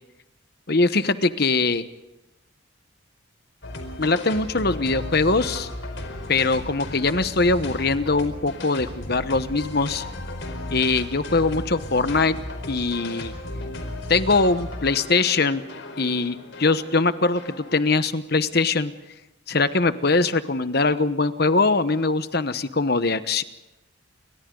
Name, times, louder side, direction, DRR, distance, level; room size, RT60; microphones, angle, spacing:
voice 1, 0.7-1.8 4.0-5.7 6.3-10.0 10.7-12.3 12.7-13.3 14.1-15.6 16.0-18.9 19.5-23.4, left 3 dB, 50° left, 12 dB, 1.1 m, -22 dB
sound 1, 3.6-17.9, left 1 dB, 65° left, 4.6 m, -35 dB
30.0 x 24.5 x 3.9 m, 0.96 s
head